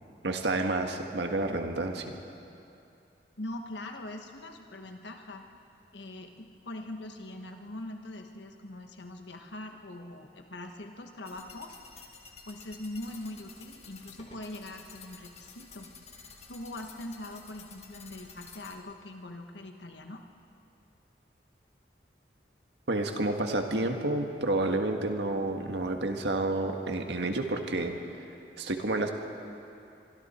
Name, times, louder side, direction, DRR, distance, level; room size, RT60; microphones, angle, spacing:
voice 1, 0.2-2.1 22.9-28.0 28.6-29.1, right 2 dB, 80° right, 4 dB, 1.7 m, -29 dB
voice 2, 3.4-5.5 5.9-11.8 12.5-15.9 16.5-20.2, left 1 dB, 85° left, 4 dB, 1.4 m, -42 dB
sound 1, 11.2-18.7, left 5 dB, 35° left, 1.9 m, -51 dB
25.5 x 23.5 x 4.4 m, 2.7 s
head